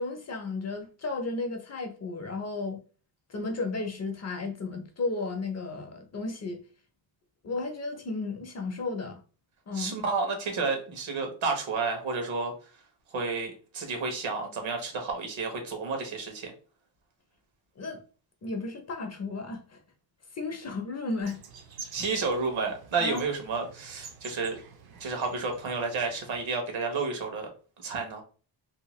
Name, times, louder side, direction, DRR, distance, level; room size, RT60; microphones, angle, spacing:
voice 1, 0.0-2.8 3.3-6.6 7.4-9.2 9.7-10.0 17.8-18.0 18.4-19.8 20.3-21.4 23.0-23.2, left 3 dB, 35° left, 0.5 m, -34 dB
voice 2, 9.7-12.5 13.1-16.5 21.9-24.6 25.0-27.5 27.8-28.2, right 4 dB, 70° right, 1.1 m, -31 dB
sound 1, 21.2-26.5, right 6 dB, 50° right, 0.6 m, -48 dB
2.7 x 2.2 x 3.0 m
cardioid pair, 115°, 49 cm